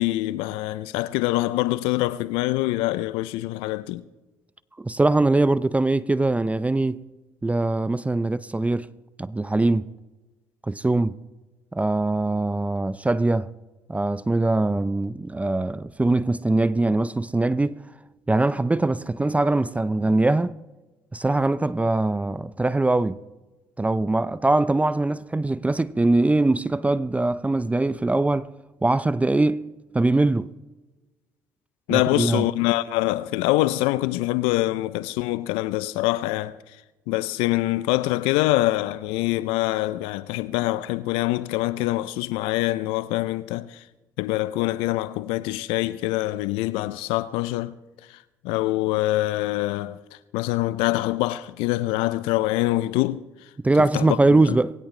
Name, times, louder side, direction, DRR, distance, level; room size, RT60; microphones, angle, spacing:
voice 1, 0.0-4.0 31.9-36.6 37.1-43.8 44.2-47.7 48.1-53.2 53.8-54.2 54.5-54.6, left 18 dB, 75° left, 0.5 m, -25 dB
voice 2, 4.8-7.0 7.4-8.9 9.2-9.9 10.7-11.2 11.7-13.5 13.9-17.8 18.3-20.5 21.1-23.2 23.8-28.5 28.8-29.7 29.9-30.5 31.9-32.4 53.6-54.7, right 2 dB, 15° right, 0.5 m, -22 dB
21.5 x 17.0 x 3.3 m
hypercardioid pair, 55°, 9 cm